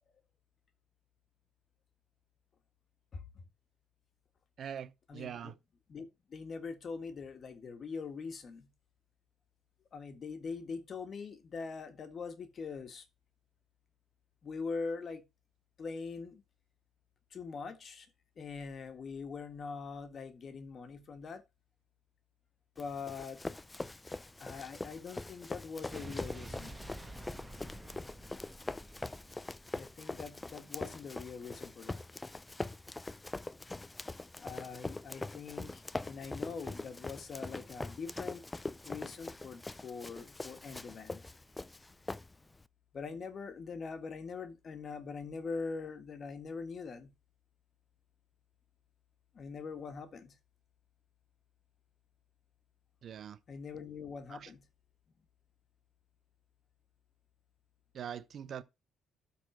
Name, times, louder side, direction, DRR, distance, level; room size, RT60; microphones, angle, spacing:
voice 1, 3.1-3.4 5.1-5.5 5.9-8.7 9.9-13.0 14.4-15.2 15.8-16.4 17.3-18.1 18.4-21.4 22.8-23.4 24.4-26.8 29.7-32.1 34.4-38.4 38.8-41.2 42.9-47.1 49.3-50.3 53.5-54.6, left 5 dB, 40° left, 1.6 m, -43 dB
voice 2, 4.6-5.5 53.0-53.4 54.3-54.5 57.9-58.6, right 8 dB, 50° right, 0.8 m, -43 dB
Run, 22.8-42.6, left 2 dB, 15° left, 0.4 m, -43 dB
Explosion, 25.9-30.2, right 1 dB, 5° right, 1.2 m, -48 dB
12.5 x 4.2 x 4.4 m
cardioid pair, 120°, 0 cm